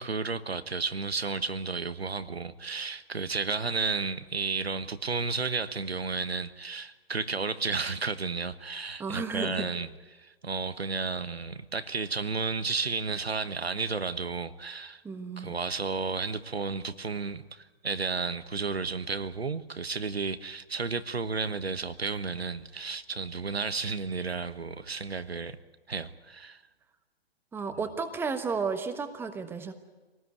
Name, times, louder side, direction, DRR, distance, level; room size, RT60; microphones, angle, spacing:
voice 1, 0.0-15.0 15.4-25.6 25.9-26.6 27.8-27.9, right 4 dB, 80° right, 12 dB, 1.3 m, -32 dB
voice 2, 9.0-9.7 15.0-15.5 27.5-29.7, right 5 dB, 5° right, 9 dB, 1.3 m, -33 dB
25.0 x 19.0 x 9.6 m, 1.2 s
figure-of-eight pair, 120°, 31 cm